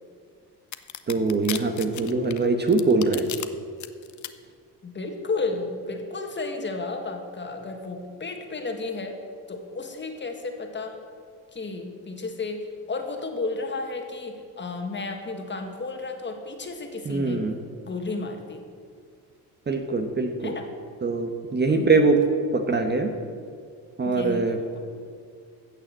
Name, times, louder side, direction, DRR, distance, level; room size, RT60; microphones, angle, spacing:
sound 1, 0.7-3.5 3.8-4.3, left 11 dB, 45° left, 0.8 m, -34 dB
voice 1, 1.1-3.3 17.0-17.6 19.7-20.5 21.0-22.2 22.5-23.1 24.0-24.6, right 3 dB, 25° right, 5 dB, 1.1 m, -23 dB
voice 2, 4.8-9.2 9.5-10.9 11.5-12.6 12.9-17.5 17.8-18.6 20.4-20.7 21.7-21.9 24.0-24.8, left 3 dB, 25° left, 4 dB, 1.9 m, -33 dB
15.5 x 6.5 x 7.5 m, 2.2 s
cardioid pair, 105°, 40 cm